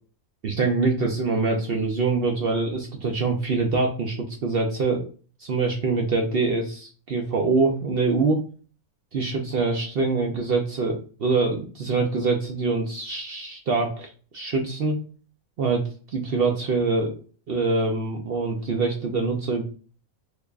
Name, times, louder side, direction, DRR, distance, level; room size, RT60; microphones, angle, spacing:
voice 1, 0.4-5.1 5.4-8.4 9.1-15.0 15.6-17.1 17.5-19.6, right 3 dB, 60° right, 1 dB, 0.7 m, -24 dB
3.4 x 3.2 x 2.3 m, 0.39 s
omnidirectional pair, 1.4 m